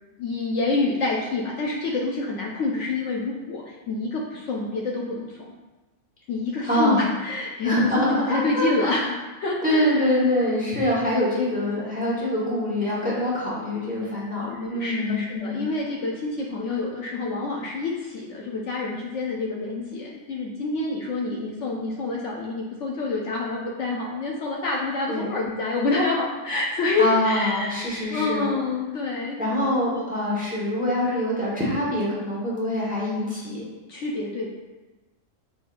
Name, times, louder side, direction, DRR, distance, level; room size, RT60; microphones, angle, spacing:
voice 1, 0.2-5.4 6.3-10.2 14.4-27.7 28.1-29.4 33.9-34.5, left 3 dB, 70° left, -2 dB, 0.9 m, -27 dB
voice 2, 6.7-7.1 7.6-9.0 9.6-15.6 25.1-25.3 27.0-28.5 29.4-33.6, left 1 dB, 5° right, -6 dB, 1.1 m, -24 dB
5.5 x 3.9 x 2.5 m, 1.2 s
omnidirectional pair, 1.4 m